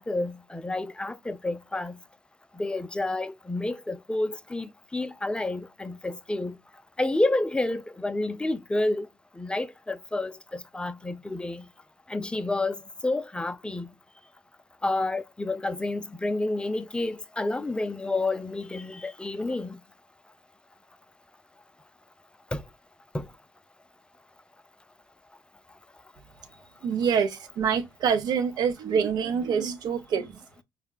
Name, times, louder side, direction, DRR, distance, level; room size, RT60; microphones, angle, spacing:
voice 1, 0.0-2.0 2.5-6.6 7.0-9.1 9.3-11.7 12.1-13.9 14.8-19.8 22.5-22.6 23.1-23.3, left 2 dB, 10° left, 0.4 m, -29 dB
voice 2, 26.8-30.4, right 7 dB, 60° right, 0.7 m, -26 dB
4.7 x 2.1 x 2.3 m
supercardioid pair, 65°, 8 cm